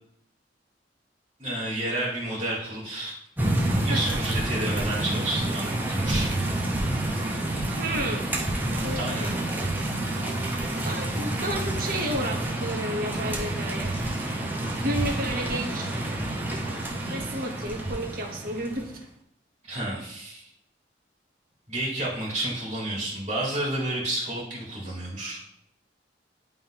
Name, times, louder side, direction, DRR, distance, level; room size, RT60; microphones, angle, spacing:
voice 1, 1.4-3.1 3.8-6.3 8.9-9.3 19.7-20.4 21.7-25.4, right 1 dB, 35° right, -5 dB, 2.1 m, -30 dB
sound 1, 3.4-18.9, right 1 dB, 10° right, 1.0 m, -28 dB
voice 2, 3.9-4.2 7.8-8.2 8.8-9.3 10.8-13.9 14.8-15.9 16.7-19.0, right 1 dB, 55° right, 1 dB, 1.1 m, -32 dB
10.5 x 3.6 x 3.0 m, 0.72 s
head